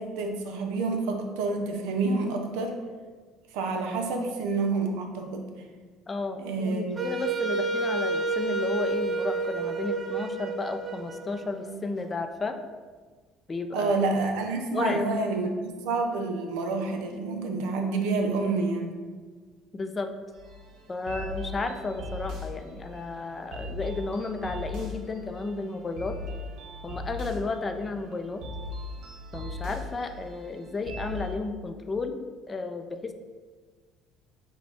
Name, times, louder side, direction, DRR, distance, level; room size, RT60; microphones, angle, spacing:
voice 1, 0.0-2.8 3.5-5.5 6.4-7.0 13.7-18.9, right 3 dB, 85° right, 3 dB, 0.6 m, -28 dB
voice 2, 6.1-12.6 13.5-14.0 14.7-15.0 19.7-20.1 20.9-26.2 26.8-28.4 29.3-32.2 32.5-33.1, left 3 dB, 25° left, 6 dB, 0.4 m, -33 dB
Wind instrument woodwind instrument, 7.0-11.9, right 3 dB, 35° right, 0.5 m, -30 dB
sound 1, 20.3-31.3, left 1 dB, 65° right, 1.0 m, -39 dB
5.0 x 2.2 x 4.7 m, 1.5 s
cardioid pair, 105°, 0 cm